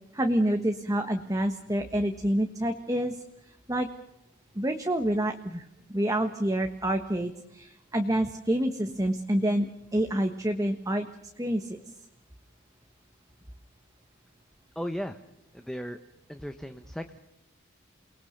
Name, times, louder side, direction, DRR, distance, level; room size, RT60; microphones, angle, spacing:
voice 1, 0.1-3.2 3.7-3.9 4.5-11.1 11.4-11.8, right 1 dB, 15° right, 5 dB, 1.4 m, -28 dB
voice 2, 14.7-15.2 15.5-16.0 16.3-17.2, equal, ahead, 7 dB, 1.0 m, -36 dB
29.5 x 20.0 x 6.6 m, 0.85 s
head